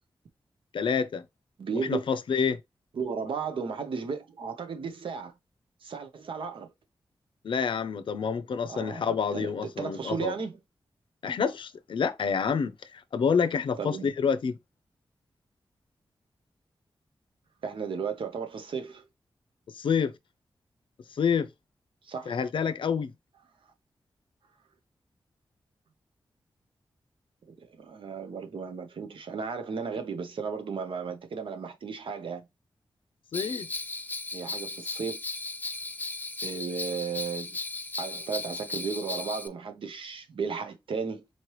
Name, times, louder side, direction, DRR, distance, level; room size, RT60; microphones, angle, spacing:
voice 1, 0.7-1.2 1.7-2.6 7.4-10.3 11.2-14.6 19.7-20.1 21.2-21.5 22.3-23.1 33.3-33.7, left 6 dB, 75° left, 0.5 m, -28 dB
voice 2, 1.6-2.0 2.9-5.3 5.8-6.7 8.7-9.1 9.3-10.6 13.8-14.1 17.6-19.0 22.0-22.4 27.5-32.5 34.3-35.2 36.4-37.6 38.0-41.3, right 5 dB, 85° right, 0.9 m, -34 dB
Bell, 33.3-39.5, left 3 dB, 20° left, 0.4 m, -36 dB
4.3 x 3.1 x 3.0 m
wide cardioid pair, 150°, 9 cm